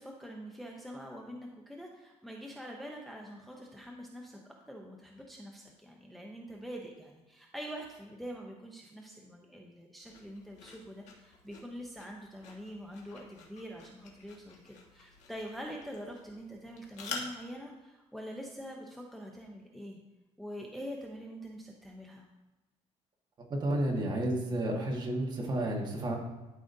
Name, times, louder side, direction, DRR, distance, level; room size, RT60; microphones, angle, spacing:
voice 1, 0.0-4.4 4.7-20.0 20.4-22.2, equal, ahead, 0 dB, 0.7 m, -45 dB
sound 1, 10.0-17.6, left 4 dB, 70° left, 1.6 m, -48 dB
voice 2, 23.5-26.2, right 1 dB, 35° right, 0 dB, 1.5 m, -31 dB
12.0 x 4.9 x 2.7 m, 1.1 s
cardioid pair, 135°, 13 cm